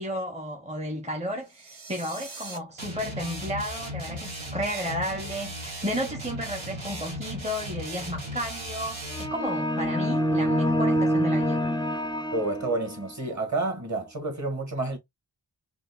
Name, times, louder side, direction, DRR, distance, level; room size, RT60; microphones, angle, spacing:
voice 1, 0.0-11.6, equal, 15° right, 0.7 m, -33 dB
sound 1, 1.4-2.6, right 3 dB, 55° right, 1.2 m, -42 dB
sound 2, 2.8-9.4, equal, 80° right, 1.7 m, -36 dB
sound 3, 9.1-13.1, equal, 10° left, 0.4 m, -26 dB
voice 2, 12.3-15.0, right 2 dB, 35° right, 1.6 m, -29 dB
5.0 x 2.1 x 2.3 m
wide cardioid pair, 40°, 47 cm